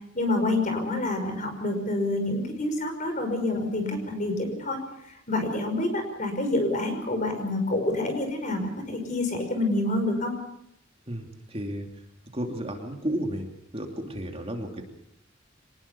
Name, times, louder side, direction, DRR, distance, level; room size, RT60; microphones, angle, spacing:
voice 1, 0.1-4.8 5.3-10.3, left 2 dB, 40° left, 5 dB, 5.5 m, -27 dB
voice 2, 11.1-11.9 12.3-13.5 13.7-14.8, equal, 30° right, 3 dB, 2.8 m, -32 dB
25.0 x 19.5 x 6.9 m, 0.76 s
head